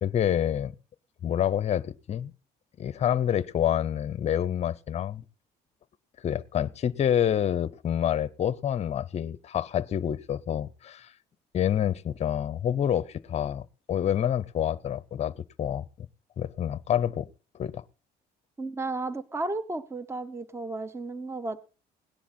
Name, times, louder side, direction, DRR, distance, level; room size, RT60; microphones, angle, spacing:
voice 1, 0.0-0.7 1.2-2.3 2.8-5.2 6.2-11.1 11.5-15.8 16.4-17.3 17.5-17.8, left 10 dB, 40° left, 0.6 m, -27 dB
voice 2, 18.6-21.6, right 2 dB, 15° right, 0.9 m, -33 dB
17.5 x 10.0 x 4.2 m
cardioid pair, 110°, 17 cm